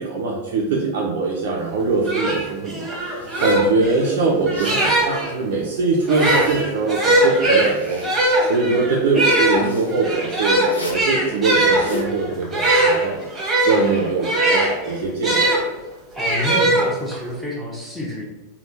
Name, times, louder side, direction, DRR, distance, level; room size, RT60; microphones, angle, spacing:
voice 1, 0.0-3.1 3.4-13.1 13.6-15.5, right 4 dB, 55° right, -3 dB, 0.5 m, -22 dB
sound 1, 1.7-1.8 2.0-5.3 6.0-15.6 16.2-17.3, right 1 dB, 10° right, 1.2 m, -20 dB
Zipper (clothing), 3.2-3.7 4.4-4.9 5.9-6.8 7.3-8.3 9.3-9.9 10.6-11.1 11.6-12.1, left 1 dB, 80° left, 0.7 m, -34 dB
voice 2, 16.2-18.3, left 1 dB, 5° left, -4 dB, 1.0 m, -28 dB
3.4 x 2.3 x 2.7 m, 1.1 s
figure-of-eight pair, 90°, 0 cm